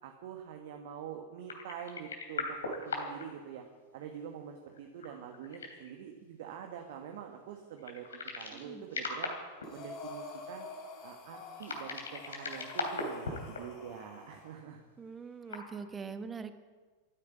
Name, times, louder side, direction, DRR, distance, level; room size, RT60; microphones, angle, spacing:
voice 1, 0.0-3.6 3.9-8.1 8.3-9.3 9.7-10.7 11.0-14.8, right 8 dB, 55° right, 4 dB, 1.5 m, -45 dB
sound 1, 1.5-3.2 3.6-3.7 4.8-5.9 7.8-8.6 8.9-9.7 11.6-13.6 13.9-14.0 15.4-15.7, left 4 dB, 70° left, 2.9 m, -38 dB
Breathing, 9.6-14.6, left 3 dB, 35° left, 3.2 m, -47 dB
voice 2, 15.0-16.5, right 5 dB, 15° right, 10 dB, 1.2 m, -42 dB
14.0 x 11.0 x 8.4 m, 1.4 s
figure-of-eight pair, 90°, 0 cm